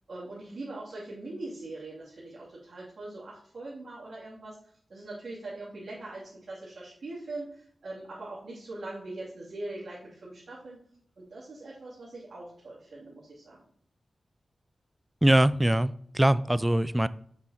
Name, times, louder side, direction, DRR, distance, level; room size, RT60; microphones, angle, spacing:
voice 1, 0.1-10.8 11.2-13.6, right 2 dB, 65° right, -8 dB, 2.6 m, -41 dB
voice 2, 15.2-17.1, right 1 dB, 15° right, 16 dB, 0.4 m, -22 dB
6.2 x 6.1 x 4.2 m, 0.62 s
cardioid pair, 50°, 0 cm